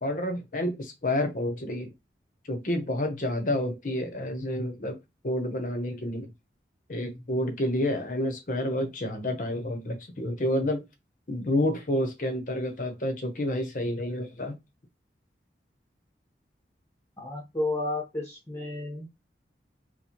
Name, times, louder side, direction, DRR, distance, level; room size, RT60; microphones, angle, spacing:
voice 1, 0.0-1.9 2.5-5.0 5.2-6.3 6.9-10.8 11.3-14.6, left 1 dB, 45° left, 0.8 m, -29 dB
voice 2, 17.2-19.1, left 2 dB, 15° left, 0.9 m, -32 dB
4.3 x 2.2 x 2.8 m
head